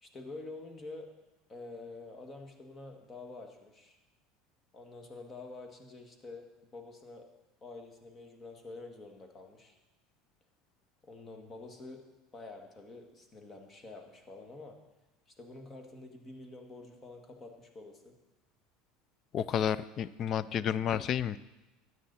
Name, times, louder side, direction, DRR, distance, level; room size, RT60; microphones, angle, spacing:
voice 1, 0.0-1.1 1.5-4.0 4.7-6.5 6.7-7.2 7.6-9.8 11.0-12.0 12.3-14.8 15.3-18.1, left 3 dB, 30° left, 4 dB, 2.0 m, -47 dB
voice 2, 19.3-21.4, left 9 dB, 45° left, 18 dB, 0.5 m, -31 dB
13.0 x 9.5 x 4.2 m, 1.0 s
supercardioid pair, 95°, 0 cm